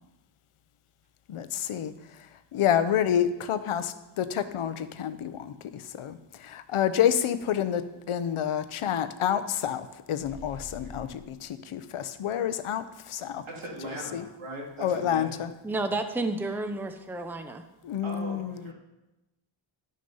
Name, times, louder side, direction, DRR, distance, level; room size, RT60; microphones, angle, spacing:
voice 1, 1.3-13.4 14.1-14.2 14.8-15.5 17.8-18.7, left 9 dB, 80° left, 12 dB, 0.8 m, -29 dB
sound 1, 10.2-11.4, left 2 dB, 45° left, 1.0 m, -46 dB
voice 2, 13.4-15.4 18.0-18.7, right 1 dB, 75° right, -2 dB, 2.8 m, -39 dB
voice 3, 15.6-17.6, right 2 dB, 5° right, 7 dB, 0.6 m, -31 dB
11.5 x 6.4 x 5.5 m, 1.0 s
wide cardioid pair, 125°, 49 cm